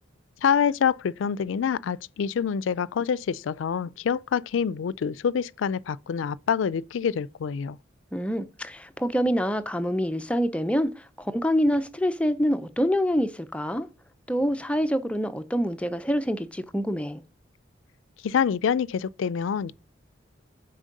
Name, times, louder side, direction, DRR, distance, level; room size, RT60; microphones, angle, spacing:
voice 1, 0.4-7.8 18.2-19.7, left 7 dB, 85° left, 0.4 m, -26 dB
voice 2, 8.1-10.9 11.2-13.9 14.3-17.2, equal, 5° left, 0.5 m, -26 dB
6.3 x 4.4 x 5.2 m
head